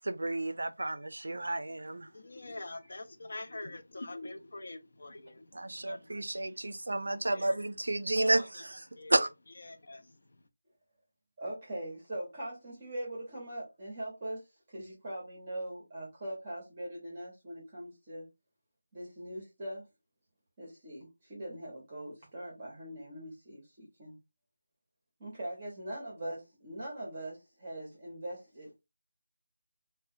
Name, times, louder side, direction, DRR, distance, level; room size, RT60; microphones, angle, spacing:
voice 1, 0.0-2.1 5.5-8.4 9.1-9.3, right 2 dB, 85° right, 0.4 m, -31 dB
voice 2, 1.4-7.6 8.2-8.6 8.9-9.2 9.6-10.4, left 2 dB, 45° left, 0.4 m, -46 dB
voice 3, 11.4-18.3 18.9-19.9 20.6-24.2 25.2-28.8, right 1 dB, 20° right, 0.6 m, -42 dB
2.7 x 2.1 x 2.5 m
figure-of-eight pair, 180°, 0 cm